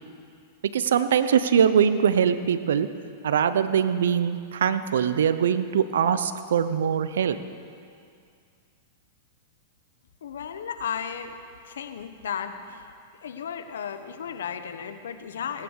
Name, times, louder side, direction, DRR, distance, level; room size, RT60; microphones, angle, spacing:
voice 1, 0.7-2.9 3.2-7.4, right 8 dB, 80° right, 12 dB, 0.8 m, -22 dB
voice 2, 10.2-12.9 13.2-15.6, left 7 dB, 80° left, 9 dB, 1.1 m, -35 dB
18.0 x 9.9 x 6.7 m, 2.3 s
hypercardioid pair, 115°, 0 cm